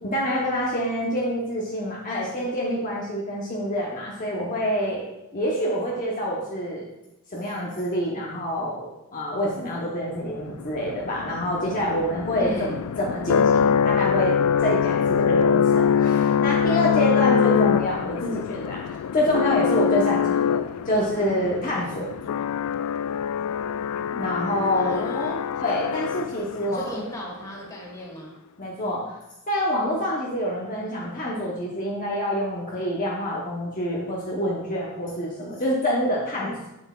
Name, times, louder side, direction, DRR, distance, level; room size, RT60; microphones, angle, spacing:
voice 1, 0.0-5.1 5.3-6.8 7.3-22.1 24.1-25.0 25.6-27.0 28.6-29.2 29.5-36.6, equal, 40° left, -4 dB, 1.0 m, -27 dB
sound 1, 10.5-26.7, left 7 dB, 85° left, 0.3 m, -24 dB
voice 2, 12.3-12.8 24.7-25.4 26.7-28.4, equal, 15° left, -2 dB, 1.5 m, -34 dB
7.9 x 7.3 x 2.4 m, 0.91 s
head